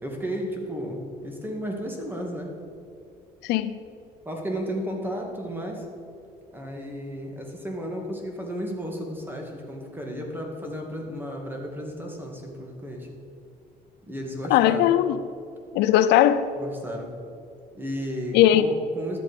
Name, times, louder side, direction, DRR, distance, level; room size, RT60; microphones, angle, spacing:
voice 1, 0.0-2.5 4.3-5.9 6.5-13.1 14.1-14.9 16.6-17.1 17.7-19.2, equal, 10° right, 2.0 m, -33 dB
voice 2, 3.4-3.8 14.5-15.2 15.7-16.5 18.3-18.7, left 11 dB, 85° left, 0.5 m, -19 dB
12.0 x 7.6 x 5.2 m
cardioid pair, 110°, 17 cm